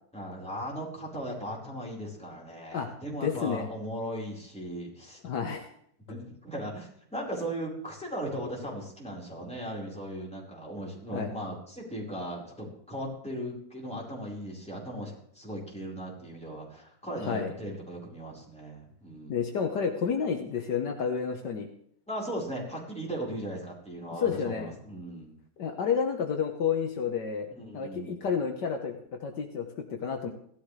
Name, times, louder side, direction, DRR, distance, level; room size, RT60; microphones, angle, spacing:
voice 1, 0.1-5.2 6.1-19.4 22.1-25.3 27.5-28.2, equal, 5° left, -4 dB, 4.5 m, -37 dB
voice 2, 3.2-3.7 5.2-5.7 11.1-11.3 17.1-17.5 19.3-21.7 24.2-24.7 25.6-27.5 27.7-30.3, left 6 dB, 70° left, 4 dB, 1.8 m, -30 dB
17.0 x 12.5 x 3.3 m, 0.66 s
omnidirectional pair, 2.0 m